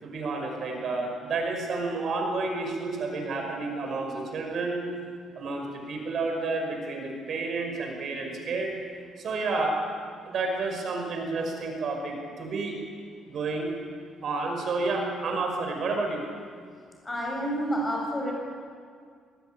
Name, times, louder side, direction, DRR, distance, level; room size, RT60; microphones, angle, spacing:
voice 1, 0.0-4.8 5.3-8.7 9.2-9.7 10.3-12.8 13.3-13.7 14.2-16.2, right 3 dB, 45° right, 2 dB, 5.6 m, -30 dB
voice 2, 17.0-18.3, equal, 15° left, -1 dB, 7.4 m, -29 dB
25.5 x 18.5 x 9.0 m, 2.1 s
cardioid pair, 155°, 0 cm